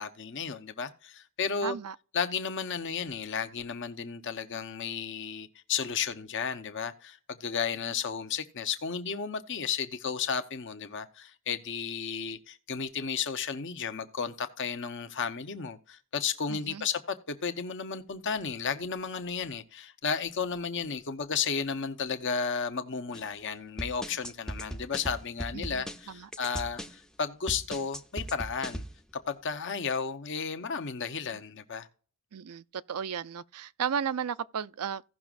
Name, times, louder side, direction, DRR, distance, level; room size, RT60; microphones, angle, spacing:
voice 1, 0.0-1.8 2.1-28.8 29.3-31.9, left 6 dB, 55° left, 0.9 m, -33 dB
voice 2, 1.6-2.0 16.5-16.8 25.5-26.3 32.3-35.0, right 7 dB, 90° right, 0.5 m, -34 dB
sound 1, 23.1-23.3 23.8-27.0 27.5-29.0, equal, 5° left, 0.6 m, -38 dB
17.0 x 6.0 x 2.5 m
head